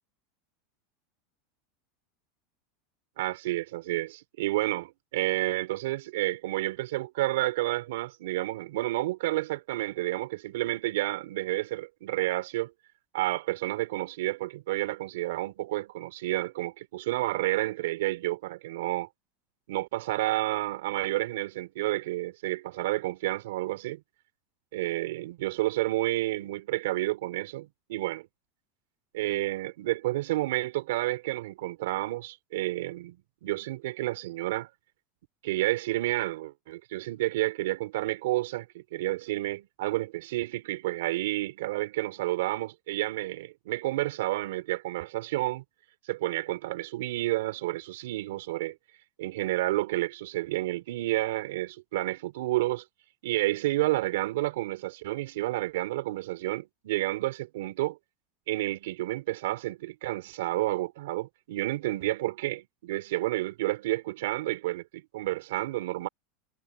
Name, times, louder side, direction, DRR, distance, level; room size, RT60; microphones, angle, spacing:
voice 1, 3.2-12.7 13.1-19.1 19.7-24.0 24.7-28.3 29.1-34.7 35.4-45.6 46.1-48.8 49.2-52.8 53.2-58.0 58.5-66.1, right 17 dB, 75° right, 3.7 m, -30 dB
supercardioid pair, 170°, 0 cm